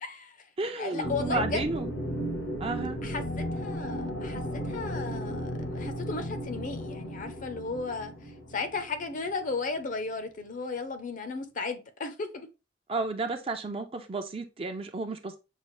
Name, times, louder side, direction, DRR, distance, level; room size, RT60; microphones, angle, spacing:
voice 1, 0.0-0.5 0.8-1.6 3.0-8.1 8.5-12.5, left 4 dB, 45° left, 0.6 m, -35 dB
voice 2, 0.6-1.9 2.6-3.0 12.9-15.4, right 3 dB, 30° right, 0.5 m, -32 dB
sound 1, 1.0-9.5, equal, 75° left, 1.1 m, -35 dB
6.5 x 2.4 x 3.1 m
head